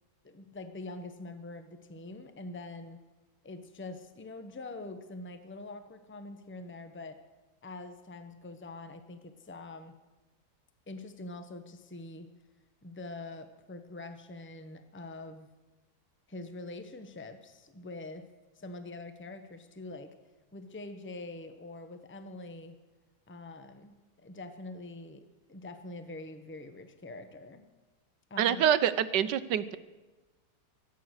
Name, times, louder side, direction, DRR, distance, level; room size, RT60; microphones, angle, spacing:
voice 1, 0.2-3.0 3.4-7.2 7.6-9.9 10.9-12.3 12.8-15.5 16.3-18.3 18.6-20.1 20.5-22.7 23.3-25.2 25.5-27.6 28.3-28.7, left 2 dB, 10° left, 8 dB, 0.9 m, -44 dB
voice 2, 28.4-29.8, right 9 dB, 85° right, 14 dB, 1.4 m, -26 dB
23.0 x 9.2 x 6.5 m, 1.2 s
omnidirectional pair, 1.8 m